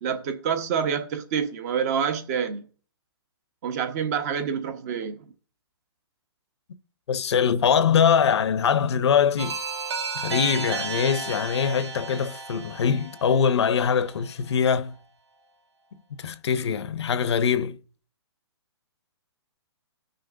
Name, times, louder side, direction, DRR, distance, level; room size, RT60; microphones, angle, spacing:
voice 1, 0.0-2.6 3.6-5.2, right 7 dB, 35° right, 1.1 m, -27 dB
voice 2, 7.1-9.6 10.1-14.9 16.2-17.8, left 7 dB, 70° left, 0.8 m, -23 dB
sound 1, 9.4-14.1, right 4 dB, 70° right, 2.0 m, -33 dB
18.0 x 6.4 x 2.6 m
hypercardioid pair, 160°, 15 cm